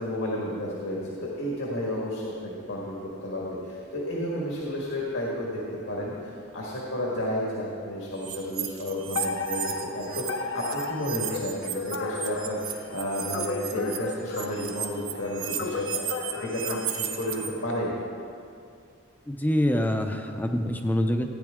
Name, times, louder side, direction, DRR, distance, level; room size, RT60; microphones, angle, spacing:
voice 1, 0.0-17.9, equal, 80° left, -4 dB, 1.7 m, -32 dB
sound 1, 8.2-10.3 10.6-17.5, right 9 dB, 85° right, 1.0 m, -34 dB
Alarm, 9.1-17.7, left 4 dB, 65° left, 0.7 m, -35 dB
voice 2, 19.3-21.3, left 1 dB, 10° left, 5 dB, 0.6 m, -25 dB
15.0 x 9.4 x 3.7 m, 2.4 s
head